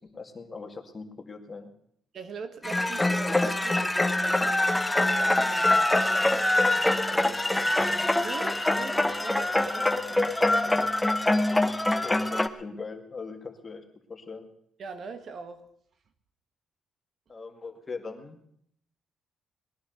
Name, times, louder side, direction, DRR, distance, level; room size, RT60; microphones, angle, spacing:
voice 1, 0.0-1.7 12.0-13.8 14.1-14.5 17.3-18.4, left 4 dB, 30° left, 4 dB, 2.3 m, -40 dB
voice 2, 2.1-6.4 6.6-10.3 10.6-10.9 14.8-15.6, right 5 dB, 55° right, 9 dB, 1.5 m, -43 dB
sound 1, 2.6-12.5, left 1 dB, 10° left, 0.9 m, -24 dB
20.0 x 11.0 x 6.6 m, 0.69 s
cardioid pair, 90°, 0 cm